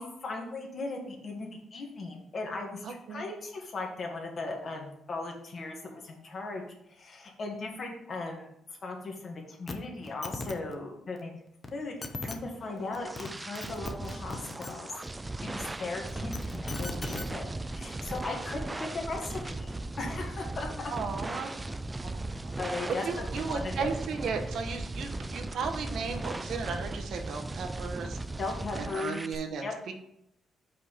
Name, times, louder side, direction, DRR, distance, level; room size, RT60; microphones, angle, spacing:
voice 1, 0.0-6.6 6.9-8.5 8.8-11.3 11.7-11.9 12.2-14.9 15.4-20.9 22.6-23.9 28.4-29.2 29.6-29.7, left 3 dB, 50° left, 1 dB, 1.7 m, -38 dB
voice 2, 2.8-3.3 16.2-16.3 16.8-17.1 20.9-21.5 22.0-22.5 23.0-28.2 28.7-29.9, right 5 dB, 70° right, 5 dB, 0.9 m, -36 dB
sound 1, 9.7-9.8 10.0-10.5 11.6-11.7 12.0-12.4 13.0-13.3 13.6-14.7 16.1-17.3 18.3-18.4, left 3 dB, 35° left, 0.9 m, -37 dB
sound 2, 12.4-29.4, right 2 dB, 20° right, 0.4 m, -37 dB
5.4 x 4.2 x 5.1 m, 0.76 s
cardioid pair, 75°, 0 cm